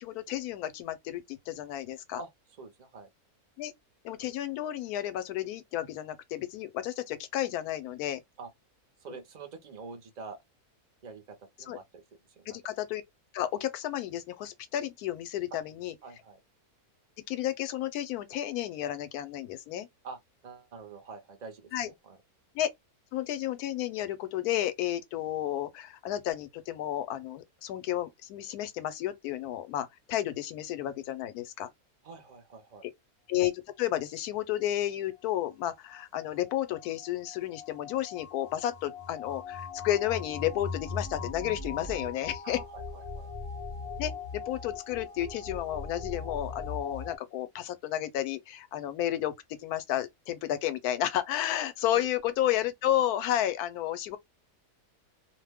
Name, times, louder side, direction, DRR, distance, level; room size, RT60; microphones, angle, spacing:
voice 1, 0.0-2.2 3.6-3.7 4.0-8.2 11.7-11.8 12.5-13.0 13.3-15.9 17.3-19.9 21.7-21.9 22.5-22.7 23.1-31.7 33.3-42.6 44.0-49.3 49.6-54.2, left 12 dB, 80° left, 1.1 m, -32 dB
voice 2, 2.6-3.1 8.4-8.5 9.0-10.4 11.0-12.0 12.4-12.6 15.5-15.6 16.0-16.4 20.0-22.2 32.0-32.9 42.4-43.3 51.9-52.1, right 4 dB, 45° right, 0.5 m, -46 dB
sound 1, 35.9-47.2, left 4 dB, 35° left, 0.6 m, -40 dB
2.6 x 2.1 x 3.3 m
omnidirectional pair, 1.6 m